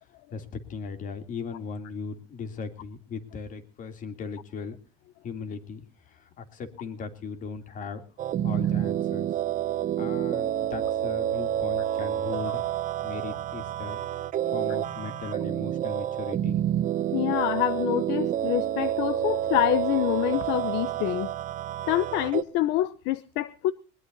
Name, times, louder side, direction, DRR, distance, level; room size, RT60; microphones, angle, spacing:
voice 1, 0.3-4.8 5.2-5.8 6.1-8.0 8.4-9.3 10.0-12.7 13.0-14.0 14.5-16.6, left 5 dB, 40° left, 9 dB, 2.8 m, -38 dB
sound 1, 8.2-22.4, right 11 dB, 40° right, 1.0 m, -28 dB
voice 2, 17.1-21.3 21.9-23.7, left 15 dB, 65° left, 16 dB, 0.8 m, -26 dB
21.5 x 20.5 x 2.7 m, 0.35 s
cardioid pair, 125°, 20 cm